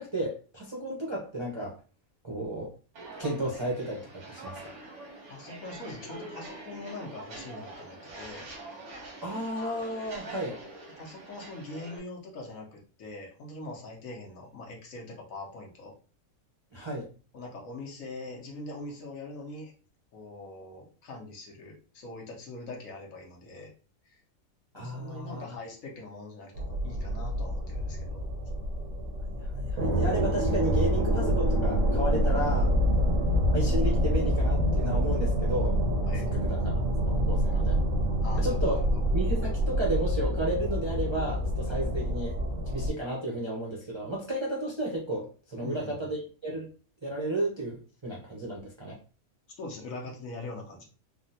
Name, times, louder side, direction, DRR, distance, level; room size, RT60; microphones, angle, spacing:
voice 1, 0.0-1.7 2.2-2.7 3.2-4.6 9.2-10.6 16.7-17.1 24.7-25.5 29.3-32.7 33.5-35.8 36.2-36.6 37.1-37.8 38.4-38.8 39.1-42.4 42.7-46.7 47.0-49.0, right 1 dB, 30° right, -4 dB, 0.5 m, -33 dB
Walk footsteps, 2.9-12.0, right 2 dB, 90° right, 1.5 m, -44 dB
voice 2, 5.3-8.4 11.0-15.9 17.3-19.7 20.1-23.7 24.1-24.2 24.7-28.3 36.1-36.3 38.2-39.0 45.6-46.1 49.6-50.9, left 2 dB, 70° left, 0 dB, 1.2 m, -42 dB
sound 1, 26.6-42.9, equal, 75° right, 1.0 m, -27 dB
3.6 x 2.1 x 2.7 m, 0.37 s
omnidirectional pair, 1.5 m